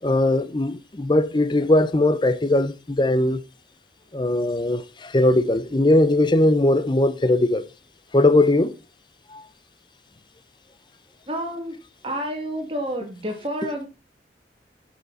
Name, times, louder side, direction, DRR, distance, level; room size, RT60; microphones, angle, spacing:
voice 1, 0.0-3.4 4.1-4.8 5.1-7.6 8.1-8.7, left 1 dB, 25° left, 0.6 m, -19 dB
voice 2, 11.3-11.8 12.0-13.9, equal, 30° right, 2.1 m, -29 dB
9.6 x 5.9 x 4.0 m
head